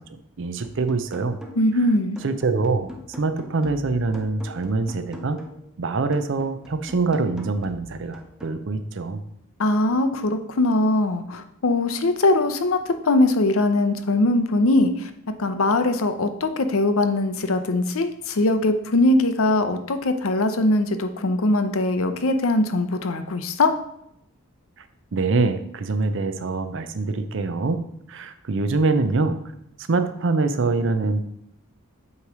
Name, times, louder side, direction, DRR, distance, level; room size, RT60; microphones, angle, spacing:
voice 1, 0.0-1.4 2.2-2.9 3.2-5.4 5.8-9.2 25.1-27.8 28.1-29.4 29.8-31.2, right 3 dB, 55° right, 10 dB, 0.5 m, -24 dB
sound 1, 0.6-1.8 2.2-5.7 6.1-8.6, left 1 dB, 5° right, 0.6 m, -42 dB
voice 2, 1.6-2.2 9.6-15.1 15.4-23.7, left 2 dB, 70° left, 9 dB, 0.6 m, -21 dB
8.4 x 3.1 x 4.9 m, 0.76 s
head